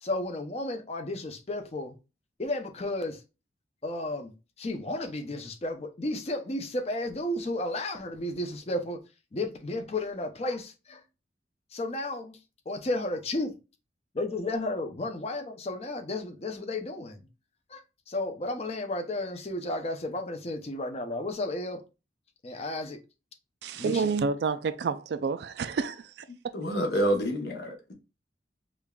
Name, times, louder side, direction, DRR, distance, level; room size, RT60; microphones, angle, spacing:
voice 1, 0.0-1.9 2.4-3.2 3.8-9.0 9.3-11.0 11.7-12.4 12.7-13.5 14.1-17.3 17.7-21.8 22.4-23.0 23.8-24.1, left 2 dB, 35° left, 0.5 m, -33 dB
voice 2, 23.6-26.1 26.4-26.5, right 5 dB, 65° right, 0.3 m, -29 dB
voice 3, 26.5-27.9, right 1 dB, 70° left, 0.9 m, -28 dB
5.0 x 2.4 x 2.2 m
head